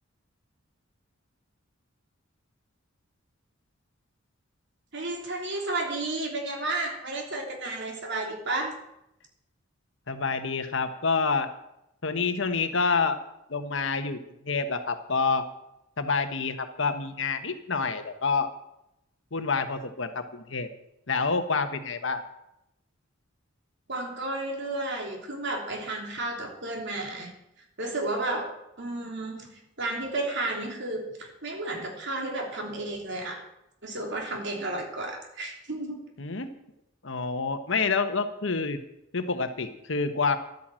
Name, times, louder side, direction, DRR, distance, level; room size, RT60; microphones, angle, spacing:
voice 1, 4.9-8.8 23.9-27.3 27.8-33.4 33.8-36.1, right 2 dB, 60° right, 1 dB, 3.3 m, -32 dB
voice 2, 10.1-11.5 12.0-13.2 13.5-14.2 14.4-15.4 16.0-18.5 19.3-20.7 21.1-22.2 36.2-36.5 37.0-38.8 39.1-40.4, left 4 dB, 65° left, 8 dB, 1.2 m, -27 dB
12.5 x 9.4 x 7.6 m, 0.83 s
head